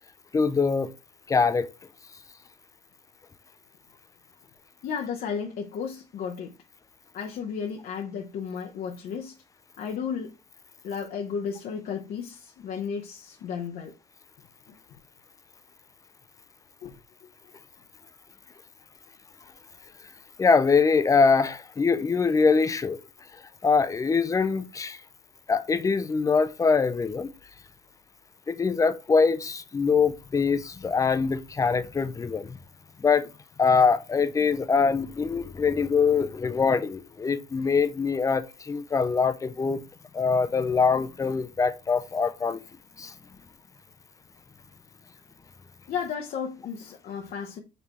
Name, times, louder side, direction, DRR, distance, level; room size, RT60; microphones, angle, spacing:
voice 1, 0.3-0.9 1.3-1.7 20.4-23.0 23.6-25.0 25.5-27.3 28.5-32.6 33.0-33.3 33.6-39.8 40.1-42.6 43.0-43.1, left 5 dB, 20° left, 0.4 m, -23 dB
voice 2, 4.8-6.5 7.1-9.3 9.8-10.3 10.8-13.9 16.8-17.0 45.9-47.6, left 6 dB, 60° left, 0.7 m, -33 dB
5.2 x 3.3 x 2.9 m
cardioid pair, 110°, 17 cm